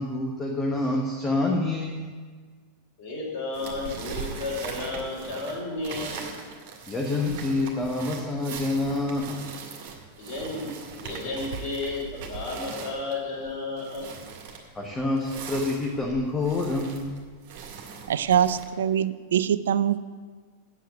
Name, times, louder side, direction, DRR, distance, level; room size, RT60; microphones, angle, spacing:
voice 1, 0.0-2.2 6.9-9.5 14.7-17.2, left 2 dB, 15° left, -1 dB, 1.3 m, -27 dB
voice 2, 3.0-6.2 10.2-10.7 11.0-14.1, left 3 dB, 45° left, -5 dB, 4.2 m, -32 dB
sound 1, 3.5-18.6, right 5 dB, 45° right, 1.9 m, -40 dB
voice 3, 18.1-20.0, right 9 dB, 65° right, 16 dB, 0.4 m, -23 dB
8.3 x 8.3 x 8.1 m, 1.5 s
figure-of-eight pair, 90°, 0 cm